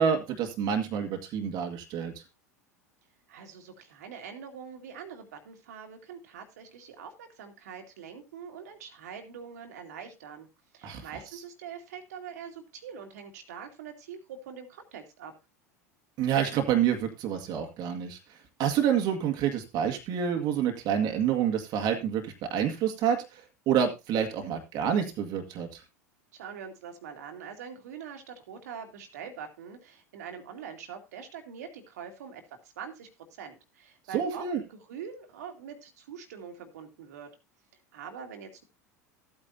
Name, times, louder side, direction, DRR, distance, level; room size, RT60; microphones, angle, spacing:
voice 1, 0.0-2.1 10.8-11.1 16.2-18.2 18.6-23.4 23.7-25.8 34.1-34.6, right 8 dB, 50° right, 4 dB, 1.9 m, -28 dB
voice 2, 3.3-10.5 10.7-15.3 26.3-32.4 32.8-33.1 33.4-37.3 37.9-38.6, right 7 dB, 75° right, 5 dB, 2.2 m, -44 dB
14.0 x 8.9 x 2.7 m, 0.25 s
hypercardioid pair, 85°, 9 cm